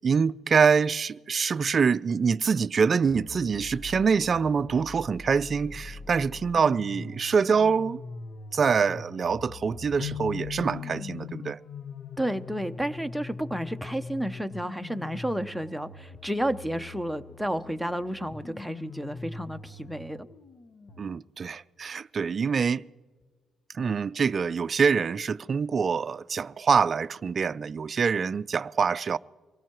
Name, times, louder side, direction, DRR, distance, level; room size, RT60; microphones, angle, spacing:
voice 1, 0.0-8.0 8.5-11.6 21.0-22.8 23.7-29.2, right 6 dB, 45° right, 0.3 m, -25 dB
sound 1, 3.0-21.0, left 3 dB, 60° left, 1.0 m, -43 dB
sound 2, 10.0-13.5, left 12 dB, 80° left, 0.5 m, -40 dB
voice 2, 12.2-20.3, right 1 dB, ahead, 0.7 m, -31 dB
23.5 x 17.5 x 3.0 m
cardioid pair, 90°, 0 cm